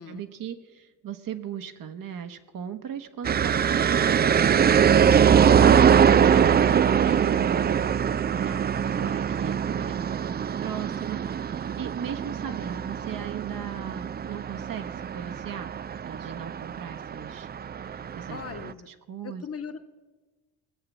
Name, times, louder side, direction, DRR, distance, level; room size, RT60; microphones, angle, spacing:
voice 1, 0.0-5.1 5.4-5.7 6.2-10.3 10.6-15.7 16.0-17.5 18.1-18.4 18.8-19.4, right 8 dB, 50° right, 7 dB, 1.3 m, -37 dB
sound 1, 3.2-18.7, right 8 dB, 25° right, 0.4 m, -23 dB
voice 2, 18.3-18.9 19.2-19.8, left 6 dB, 35° left, 9 dB, 1.4 m, -39 dB
18.5 x 8.0 x 7.4 m, 1.2 s
hypercardioid pair, 55°, 43 cm